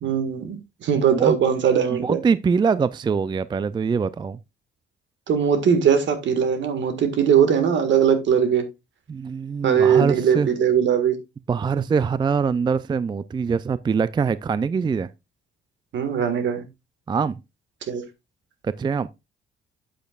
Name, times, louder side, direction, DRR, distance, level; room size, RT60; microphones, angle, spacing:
voice 1, 0.0-2.2 5.3-8.6 9.6-11.2 15.9-16.6 17.9-18.0, right 7 dB, 70° right, 1.7 m, -20 dB
voice 2, 1.9-4.4 9.1-10.5 11.5-15.1 17.1-17.4 18.6-19.1, right 5 dB, 25° right, 0.3 m, -23 dB
8.7 x 8.0 x 2.4 m
cardioid pair, 90°, 20 cm